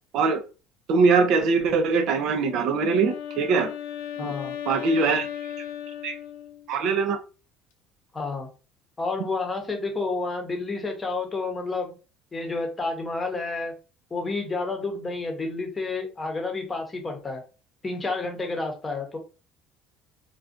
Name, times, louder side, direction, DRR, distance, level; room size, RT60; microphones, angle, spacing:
voice 1, 0.9-3.7 4.2-4.3 4.7-5.3 6.0-6.1 6.7-7.2, right 4 dB, 65° right, 0.5 m, -22 dB
Wind instrument woodwind instrument, 2.3-6.8, left 10 dB, 85° left, 0.4 m, -36 dB
voice 2, 4.2-4.5 8.1-8.5 9.0-11.9 12.3-13.7 14.1-17.4 17.8-19.2, left 3 dB, 25° left, 0.8 m, -30 dB
2.4 x 2.2 x 2.5 m
supercardioid pair, 85°, 0 cm